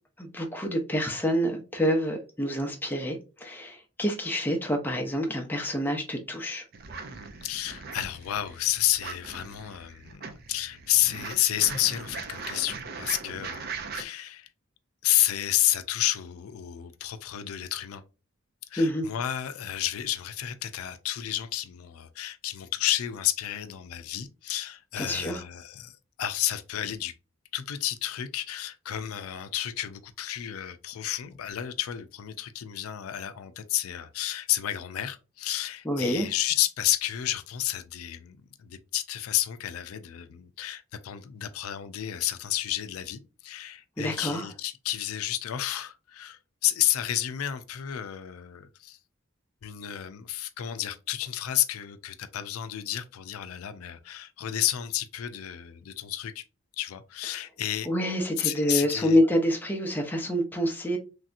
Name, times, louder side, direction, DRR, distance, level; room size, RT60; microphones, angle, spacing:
voice 1, 0.2-6.6 18.8-19.1 25.0-25.4 35.8-36.3 44.0-44.5 57.8-61.0, equal, 10° left, 0.5 m, -27 dB
sound 1, 6.7-14.0, right 5 dB, 50° right, 0.5 m, -40 dB
voice 2, 7.4-14.5 15.0-18.0 18.7-27.1 27.5-49.0 49.6-56.4 56.8-57.9 58.4-59.2, left 13 dB, 90° left, 0.4 m, -31 dB
3.2 x 2.7 x 2.5 m
head